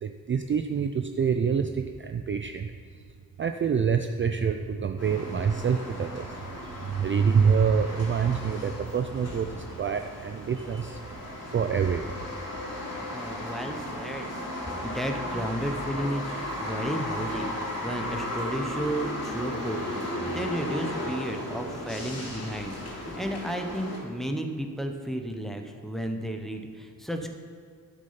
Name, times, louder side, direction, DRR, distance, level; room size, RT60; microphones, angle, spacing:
voice 1, 0.0-2.7 3.4-11.2 11.5-12.2, right 6 dB, 35° right, 7 dB, 0.4 m, -26 dB
sound 1, 5.0-24.0, left 1 dB, 45° left, 2.7 m, -35 dB
voice 2, 13.1-14.3 14.8-17.5 17.8-27.3, right 1 dB, ahead, 4 dB, 0.8 m, -33 dB
12.0 x 6.4 x 5.7 m, 2.2 s
wide cardioid pair, 155°, 34 cm